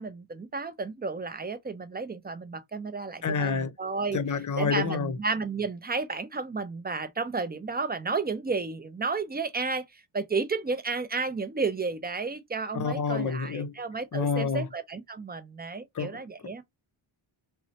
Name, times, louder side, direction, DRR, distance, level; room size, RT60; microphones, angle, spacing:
voice 1, 0.0-4.2 4.6-9.8 10.1-16.6, right 4 dB, 20° right, 0.4 m, -32 dB
voice 2, 3.2-3.7 4.1-5.2 12.7-13.7 14.1-14.7 15.9-16.2, left 5 dB, 40° left, 0.6 m, -28 dB
2.7 x 2.1 x 2.7 m
cardioid pair, 70°, 50 cm